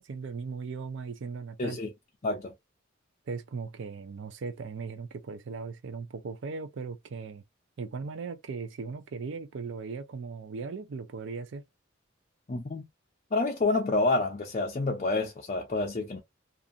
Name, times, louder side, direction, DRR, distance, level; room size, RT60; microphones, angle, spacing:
voice 1, 0.0-1.8 3.3-7.4 7.8-11.7, right 4 dB, 65° right, 0.4 m, -38 dB
voice 2, 2.2-2.5 12.5-12.9 13.3-16.2, left 3 dB, 35° left, 0.5 m, -28 dB
2.6 x 2.5 x 2.4 m
head